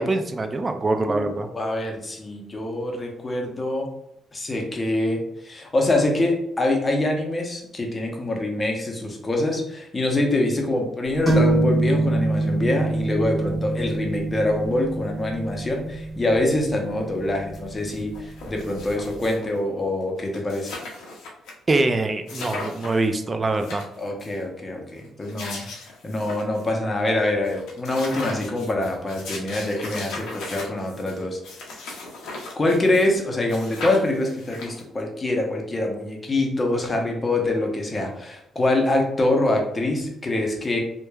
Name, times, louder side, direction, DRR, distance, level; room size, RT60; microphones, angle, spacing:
voice 1, 0.0-1.5 21.7-23.8, right 2 dB, 30° right, 7 dB, 0.3 m, -23 dB
voice 2, 1.1-3.9 4.3-20.7 24.0-25.6 26.0-31.4 32.6-40.8, left 2 dB, 25° left, 1 dB, 0.6 m, -25 dB
sound 1, 11.3-18.8, right 2 dB, 10° right, 1.4 m, -25 dB
sound 2, 17.5-17.6 17.9-19.6 20.0-20.1 20.3-21.5 21.8-21.9 22.3-23.1 23.5-24.4 25.0-26.7 27.1-27.2 27.4-33.2 33.5-35.0, left 3 dB, 85° left, 0.6 m, -37 dB
2.9 x 2.2 x 2.2 m, 0.78 s
cardioid pair, 90°, 0 cm